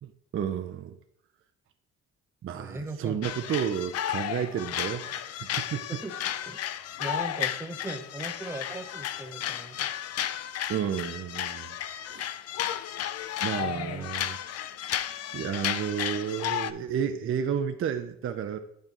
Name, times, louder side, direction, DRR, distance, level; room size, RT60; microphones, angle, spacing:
voice 1, 0.0-1.0 2.4-6.0 10.7-11.7 12.1-12.3 13.4-14.4 15.3-18.6, right 8 dB, 45° right, 7 dB, 0.5 m, -31 dB
voice 2, 2.5-3.3 5.9-6.2 6.5-6.7 7.0-9.9 13.6-14.1, right 2 dB, 10° right, 4 dB, 0.8 m, -39 dB
sound 1, 3.2-16.7, left 11 dB, 55° left, 0.4 m, -33 dB
8.8 x 5.5 x 3.0 m, 0.75 s
cardioid pair, 90°, 30 cm